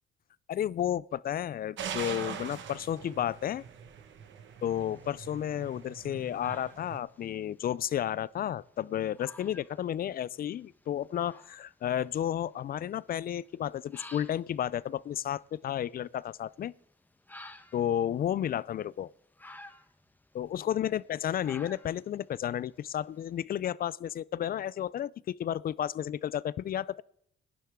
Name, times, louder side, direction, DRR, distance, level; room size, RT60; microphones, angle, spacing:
voice 1, 0.5-3.6 4.6-16.7 17.7-19.1 20.3-27.0, left 10 dB, 50° left, 0.4 m, -32 dB
sound 1, 1.8-7.0, right 7 dB, 70° right, 1.5 m, -42 dB
sound 2, 4.6-23.3, left 2 dB, 10° left, 1.0 m, -55 dB
17.5 x 10.5 x 3.7 m
cardioid pair, 90°, 20 cm